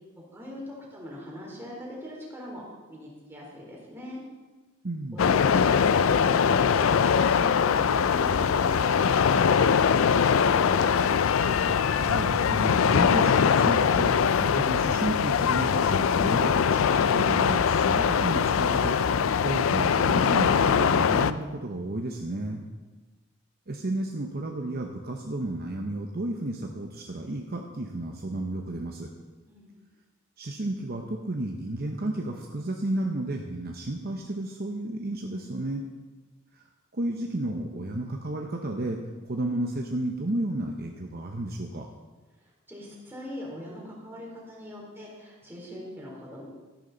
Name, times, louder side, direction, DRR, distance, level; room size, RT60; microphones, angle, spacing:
voice 1, 0.2-4.2 7.2-11.0 29.5-29.7 42.7-46.5, left 1 dB, 10° right, -4 dB, 3.4 m, -41 dB
voice 2, 4.8-5.2 11.7-22.6 23.7-29.1 30.4-35.8 36.9-39.0 39.3-41.9, right 1 dB, 50° right, 2 dB, 0.9 m, -32 dB
sound 1, 5.2-21.3, left 6 dB, 80° left, 0.4 m, -22 dB
13.0 x 11.0 x 4.0 m, 1.3 s
head